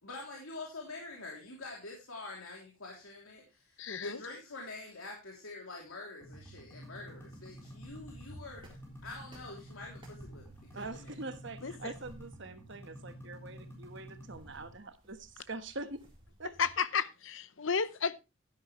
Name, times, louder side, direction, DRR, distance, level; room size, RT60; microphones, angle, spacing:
voice 1, 0.0-8.7 9.0-10.4 10.7-11.1, left 3 dB, 80° left, 3.0 m, -46 dB
voice 2, 3.8-4.2 11.6-11.9 16.6-18.2, left 6 dB, 60° left, 0.8 m, -33 dB
sound 1, 6.2-14.7, equal, 10° left, 3.9 m, -50 dB
sound 2, 6.8-16.8, equal, 25° right, 3.7 m, -58 dB
voice 3, 10.7-16.0 16.4-16.5, right 3 dB, 55° right, 1.3 m, -44 dB
12.0 x 11.0 x 3.1 m
head